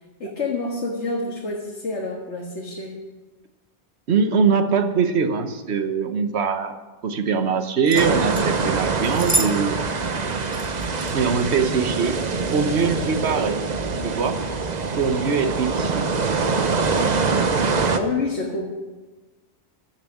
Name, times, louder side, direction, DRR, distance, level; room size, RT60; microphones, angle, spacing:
voice 1, 0.2-3.0 18.0-18.7, left 3 dB, 80° left, -2 dB, 1.9 m, -28 dB
voice 2, 4.1-6.8 7.0-9.8 11.1-12.2 12.5-13.6 14.0-14.4 15.0-16.1, right 5 dB, 70° right, 8 dB, 1.3 m, -22 dB
sound 1, 7.9-8.5 9.0-9.6 9.8-9.9 10.5-11.1 12.0-12.2 12.8-13.0, right 2 dB, 15° right, 0.8 m, -28 dB
sound 2, 7.9-18.0, right 4 dB, 40° right, 0.9 m, -24 dB
14.5 x 7.4 x 7.2 m, 1.2 s
omnidirectional pair, 1.2 m